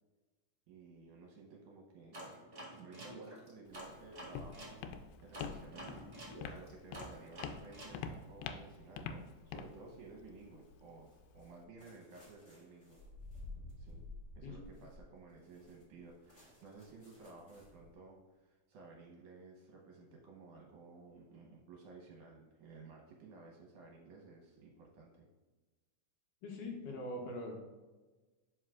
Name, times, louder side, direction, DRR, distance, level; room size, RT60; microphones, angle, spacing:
voice 1, 0.7-2.4 2.7-6.1 6.5-13.0 13.8-14.0 14.4-25.3, right 3 dB, 70° right, -1 dB, 2.0 m, -55 dB
sound 1, 2.1-4.8 5.3-8.0, right 1 dB, 25° right, 1.3 m, -49 dB
Walk footsteps, 3.7-11.6, left 6 dB, 85° left, 2.4 m, -47 dB
sound 2, 9.2-9.7 10.2-17.9, left 2 dB, 30° left, 1.5 m, -53 dB
voice 2, 26.4-27.6, left 1 dB, 70° left, 0 dB, 2.4 m, -42 dB
11.5 x 4.8 x 2.4 m, 1.2 s
omnidirectional pair, 4.2 m